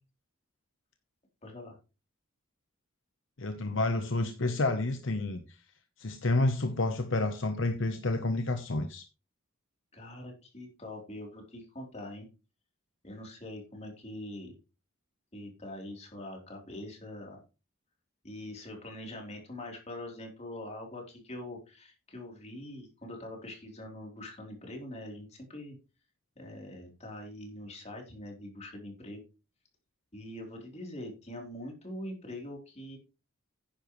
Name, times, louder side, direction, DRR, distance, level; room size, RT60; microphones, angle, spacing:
voice 1, 1.4-1.8 9.9-12.3 13.0-14.5 15.3-17.4 18.2-25.8 26.4-29.2 30.1-33.0, left 1 dB, 30° left, 1 dB, 3.5 m, -43 dB
voice 2, 3.4-5.6 6.0-9.1, left 2 dB, 60° left, 7 dB, 0.9 m, -29 dB
10.5 x 10.0 x 3.1 m, 0.31 s
head